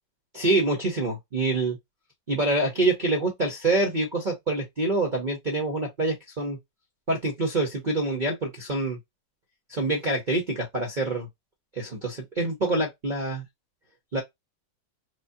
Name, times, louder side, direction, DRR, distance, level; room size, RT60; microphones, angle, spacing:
voice 1, 0.3-1.8 2.3-6.6 7.1-9.0 9.7-11.3 11.7-13.4 14.1-14.2, right 2 dB, 40° right, 0.7 m, -26 dB
4.9 x 2.0 x 2.7 m
omnidirectional pair, 1.9 m